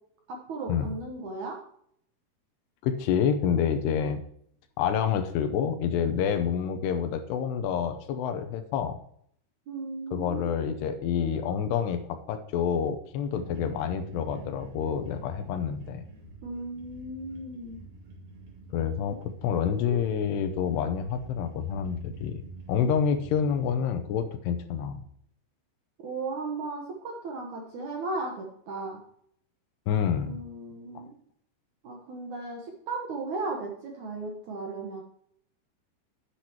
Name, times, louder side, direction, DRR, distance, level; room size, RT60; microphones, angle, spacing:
voice 1, 0.3-1.6 9.7-10.8 16.4-17.8 19.1-19.2 19.8-20.0 26.0-29.0 30.2-31.1 31.8-35.0, right 3 dB, 65° right, 0 dB, 1.9 m, -36 dB
voice 2, 2.8-4.2 4.8-9.0 10.1-16.0 18.7-22.4 22.7-25.0 29.9-30.4, left 7 dB, 80° left, 9 dB, 2.7 m, -28 dB
sound 1, 13.3-23.7, right 3 dB, 50° right, 3.9 m, -47 dB
10.5 x 9.8 x 2.9 m, 0.66 s
omnidirectional pair, 5.0 m